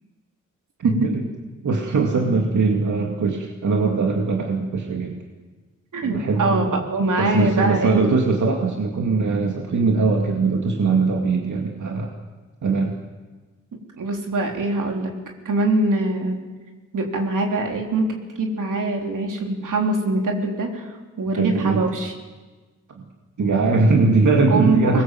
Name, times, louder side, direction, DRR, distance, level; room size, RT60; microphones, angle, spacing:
voice 1, 0.8-1.2 1.6-5.2 6.0-6.9 7.2-12.1 12.6-13.0 21.3-21.9 23.0-23.1 23.4-25.0, right 4 dB, 70° right, 1 dB, 2.4 m, -21 dB
voice 2, 5.9-8.1 14.0-15.1 15.5-16.4 16.9-20.9 21.2-22.1 24.5-25.0, right 2 dB, 90° right, 1 dB, 3.5 m, -23 dB
24.0 x 20.5 x 7.7 m, 1.3 s
wide cardioid pair, 110°, 30 cm